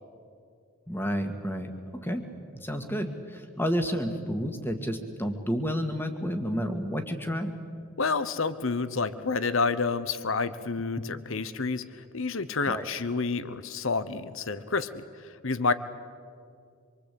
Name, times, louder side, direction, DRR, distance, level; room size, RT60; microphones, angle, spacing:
voice 1, 0.9-1.7 2.0-2.3 2.5-7.5 12.7-12.8, equal, 10° left, 6 dB, 1.9 m, -30 dB
voice 2, 8.0-15.7, left 4 dB, 65° left, 14 dB, 1.0 m, -29 dB
26.0 x 24.0 x 8.6 m, 2.3 s
head